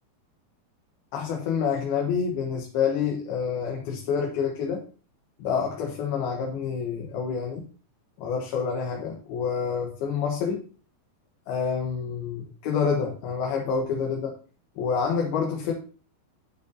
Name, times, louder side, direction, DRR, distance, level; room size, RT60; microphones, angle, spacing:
voice 1, 1.1-4.8 5.4-7.6 8.2-10.6 11.5-14.3 14.8-15.7, left 6 dB, 85° left, 0 dB, 3.3 m, -27 dB
11.5 x 9.4 x 2.8 m, 0.38 s
omnidirectional pair, 4.3 m